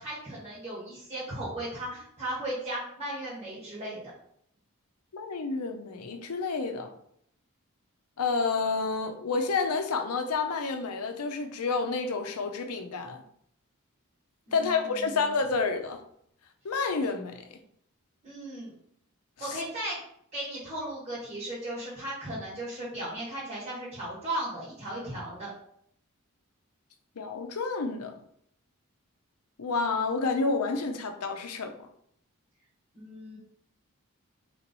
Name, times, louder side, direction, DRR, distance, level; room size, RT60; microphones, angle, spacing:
voice 1, 0.0-4.0 14.5-15.2 18.2-18.7 19.4-20.0 20.3-25.5 33.0-33.4, right 1 dB, 30° right, 1.6 m, -36 dB
voice 2, 5.1-6.9 8.2-13.2 14.5-16.0 16.6-17.4 19.4-19.6 27.2-28.2 29.6-31.7, left 4 dB, 90° left, 0.6 m, -29 dB
3.5 x 3.0 x 4.0 m
head